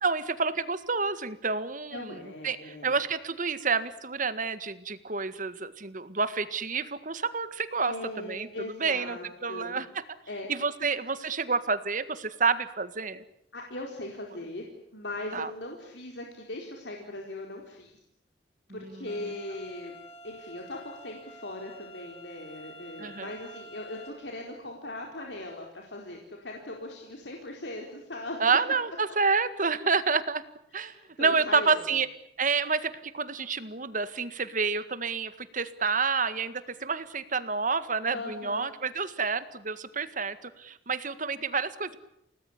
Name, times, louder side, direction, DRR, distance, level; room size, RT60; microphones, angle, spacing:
voice 1, 0.0-2.2 2.4-7.9 8.2-8.5 8.8-10.0 10.5-13.2 15.3-15.5 23.0-23.3 28.4-30.4 30.7-32.1 32.4-42.0, right 4 dB, 45° right, 13 dB, 1.8 m, -29 dB
voice 2, 1.9-3.0 7.9-9.8 10.3-10.5 10.8-10.9 13.5-14.7 14.9-17.9 18.7-20.0 20.2-28.6 30.8-31.8 38.1-38.7, left 1 dB, 70° left, 1 dB, 4.4 m, -39 dB
sound 1, 19.1-24.1, equal, 35° left, 4.7 m, -48 dB
30.0 x 19.0 x 10.0 m, 0.74 s
head